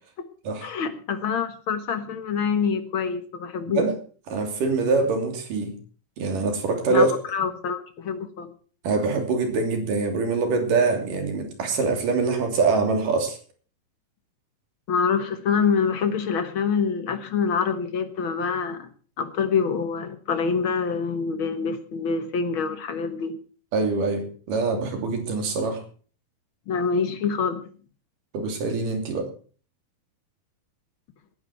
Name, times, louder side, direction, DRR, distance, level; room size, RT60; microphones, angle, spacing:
voice 1, 0.6-3.8 6.9-8.5 14.9-18.9 19.2-23.4 26.7-27.6, left 6 dB, 60° left, 9 dB, 1.4 m, -26 dB
voice 2, 4.3-5.7 6.2-7.1 8.8-13.4 23.7-25.8 28.3-29.3, right 4 dB, 65° right, 5 dB, 4.4 m, -24 dB
19.0 x 11.0 x 4.5 m, 0.41 s
omnidirectional pair, 4.2 m